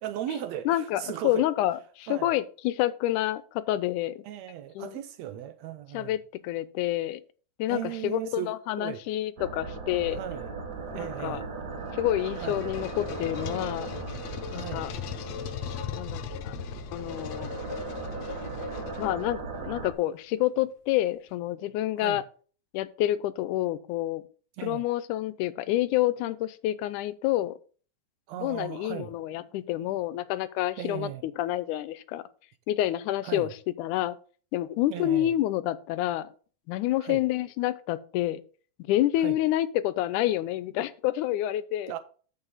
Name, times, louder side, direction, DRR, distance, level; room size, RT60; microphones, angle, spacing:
voice 1, 0.0-1.5 2.1-2.3 4.2-6.1 7.7-9.0 10.1-10.6 10.9-11.5 12.4-12.7 14.5-14.9 22.0-22.2 24.6-24.8 28.3-29.1 30.8-31.2 33.2-33.5 34.9-35.3 37.0-37.2 39.2-39.4 41.9-42.0, right 11 dB, 75° right, 1.7 m, -37 dB
voice 2, 0.7-4.2 4.8-5.0 5.9-7.2 7.6-10.2 10.9-11.4 11.9-14.0 14.5-14.9 16.0-16.6 16.9-17.5 19.0-22.2 22.7-24.2 24.6-27.5 28.4-32.2 32.7-33.5 33.8-34.2 34.5-36.3 36.7-38.4 38.9-41.9, left 14 dB, 90° left, 2.1 m, -28 dB
sound 1, 9.4-19.9, right 4 dB, 60° right, 1.1 m, -38 dB
sound 2, 11.8-19.6, left 9 dB, 70° left, 1.8 m, -38 dB
8.9 x 7.1 x 4.0 m
omnidirectional pair, 3.5 m